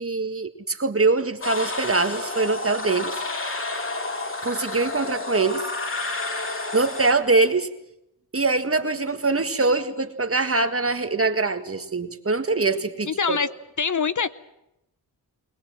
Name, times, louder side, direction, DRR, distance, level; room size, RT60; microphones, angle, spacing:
voice 1, 0.0-3.2 4.4-5.6 6.7-7.7 8.3-13.4, right 3 dB, 35° right, 8 dB, 1.7 m, -23 dB
sound 1, 1.4-7.1, left 2 dB, 30° left, 2.1 m, -30 dB
voice 2, 13.1-13.5 13.8-14.3, left 6 dB, 50° left, 14 dB, 0.8 m, -24 dB
21.5 x 20.5 x 7.6 m, 0.86 s
cardioid pair, 70°, 40 cm